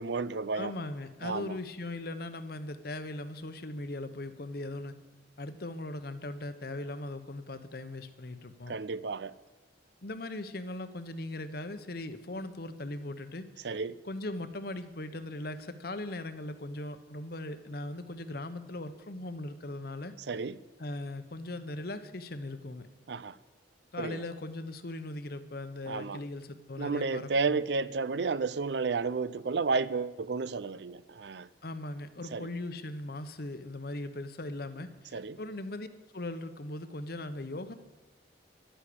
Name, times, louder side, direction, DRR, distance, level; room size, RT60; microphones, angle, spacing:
voice 1, 0.0-0.7 1.2-1.5 8.7-9.3 13.6-14.0 20.3-20.6 23.1-23.3 24.0-24.2 25.9-26.2 26.8-31.5 32.3-32.5 35.1-35.4, right 4 dB, 65° right, 0.5 m, -32 dB
voice 2, 0.5-5.0 5.4-8.8 10.0-13.8 14.0-20.1 20.8-22.9 23.9-27.6 31.6-35.9 36.1-37.7, left 2 dB, 55° left, 1.0 m, -39 dB
11.5 x 11.5 x 8.6 m
head